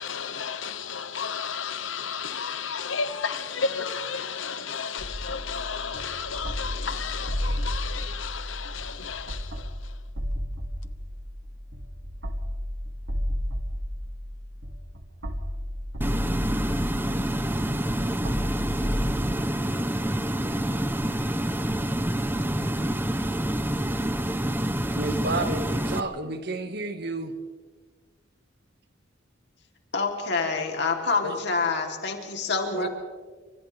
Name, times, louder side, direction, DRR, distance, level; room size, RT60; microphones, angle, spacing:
voice 1, 0.0-9.7, left 6 dB, 90° left, 1.1 m, -32 dB
sound 1, 5.0-19.4, equal, 90° right, 2.1 m, -33 dB
sound 2, 16.0-26.0, right 1 dB, 10° right, 0.9 m, -27 dB
voice 2, 25.0-27.3 31.2-31.4 32.7-32.9, right 2 dB, 55° right, 1.8 m, -31 dB
voice 3, 29.9-32.9, left 4 dB, 60° left, 3.3 m, -27 dB
29.5 x 26.0 x 3.5 m
head